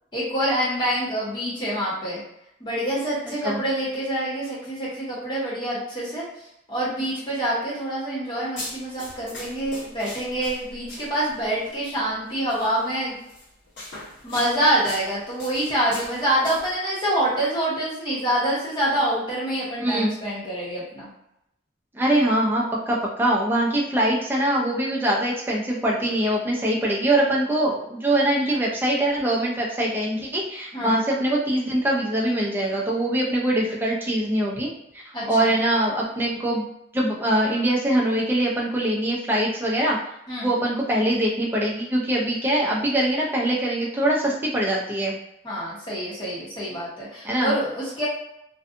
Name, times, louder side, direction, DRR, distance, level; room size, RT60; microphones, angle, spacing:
voice 1, 0.1-2.2 2.6-6.2 6.7-13.2 14.2-21.1 30.7-31.0 35.1-35.5 40.3-40.5 45.4-48.1, right 1 dB, 25° left, -8 dB, 0.9 m, -26 dB
sound 1, 8.6-11.4 12.5-12.7 13.3-16.8, left 1 dB, 65° left, 1.0 m, -40 dB
voice 2, 19.8-20.2 21.9-34.7 35.3-40.0 40.4-45.2 47.2-47.5, right 1 dB, 10° right, -3 dB, 0.5 m, -23 dB
2.6 x 2.3 x 2.5 m, 0.81 s
head